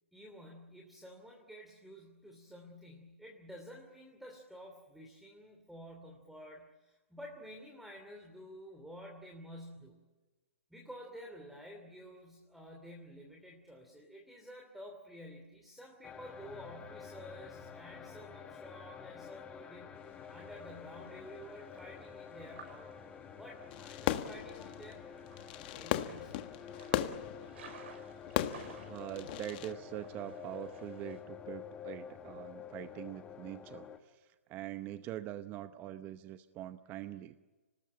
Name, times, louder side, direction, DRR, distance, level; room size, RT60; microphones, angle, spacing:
voice 1, 0.1-10.0 10.7-25.1 25.6-26.5, equal, ahead, 1 dB, 2.9 m, -51 dB
sound 1, 16.0-34.0, left 7 dB, 15° left, 1.4 m, -49 dB
sound 2, 19.9-31.2, right 6 dB, 60° right, 5.9 m, -58 dB
Fireworks, 23.7-29.7, left 12 dB, 40° left, 1.5 m, -37 dB
voice 2, 28.8-37.4, right 13 dB, 25° right, 11 dB, 0.8 m, -44 dB
25.5 x 19.5 x 8.8 m, 1.2 s
hypercardioid pair, 140°, 7 cm